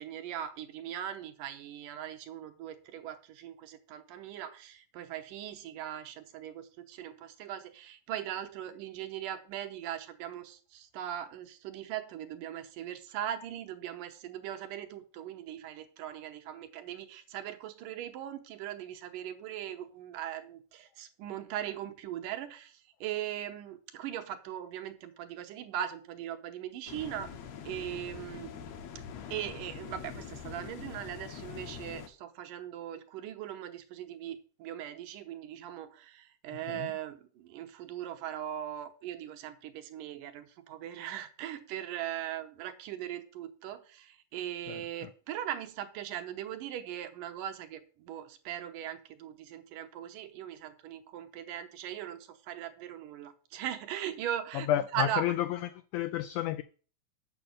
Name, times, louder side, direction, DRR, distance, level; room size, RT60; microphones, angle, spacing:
voice 1, 0.0-27.3 27.7-28.5 29.3-55.4, right 11 dB, 75° right, 2.3 m, -39 dB
sound 1, 26.9-32.1, left 7 dB, 65° left, 1.8 m, -44 dB
voice 2, 54.5-55.6 55.9-56.6, left 12 dB, 90° left, 1.7 m, -30 dB
7.1 x 6.3 x 7.8 m
omnidirectional pair, 4.1 m